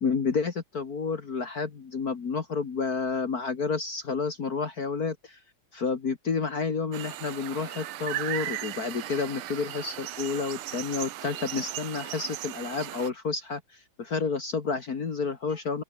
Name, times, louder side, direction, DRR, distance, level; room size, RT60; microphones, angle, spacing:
voice 1, 0.0-5.4 5.7-13.6 14.0-15.8, left 5 dB, 45° left, 2.2 m, -30 dB
sound 1, 6.9-13.1, right 14 dB, 80° right, 1.7 m, -37 dB
open air
omnidirectional pair, 2.4 m